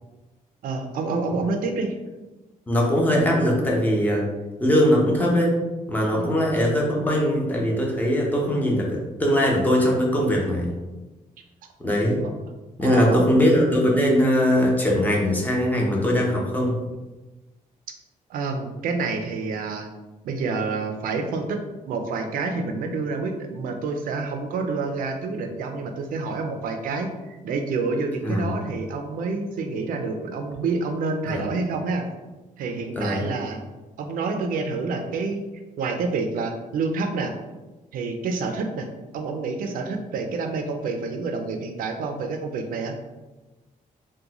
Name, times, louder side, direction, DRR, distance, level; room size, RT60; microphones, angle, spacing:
voice 1, 0.6-2.0 6.2-6.5 12.8-13.2 18.3-19.9 20.2-21.6 21.9-32.1 32.6-33.6 34.0-35.4 35.8-37.3 37.9-38.9 39.1-43.0, right 4 dB, 80° right, 5 dB, 0.5 m, -28 dB
voice 2, 2.7-4.3 4.6-5.6 5.9-10.7 11.8-12.2 12.8-16.8 28.2-28.5 31.3-31.4 32.9-33.3, equal, 10° left, -2 dB, 0.7 m, -21 dB
3.6 x 2.2 x 2.9 m, 1.1 s
cardioid pair, 135°, 14 cm